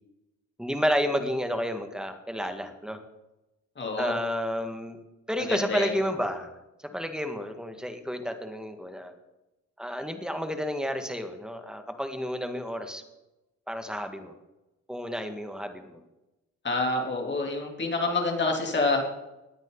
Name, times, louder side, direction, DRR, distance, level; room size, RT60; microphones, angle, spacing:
voice 1, 0.6-3.0 4.0-5.0 5.3-6.5 6.8-9.1 9.8-13.0 13.7-14.3 14.9-16.0, equal, ahead, 6 dB, 1.8 m, -31 dB
voice 2, 3.8-4.1 5.5-5.9 16.6-19.0, left 3 dB, 35° left, 1 dB, 3.4 m, -27 dB
19.5 x 9.0 x 4.0 m, 0.98 s
cardioid pair, 90°, 30 cm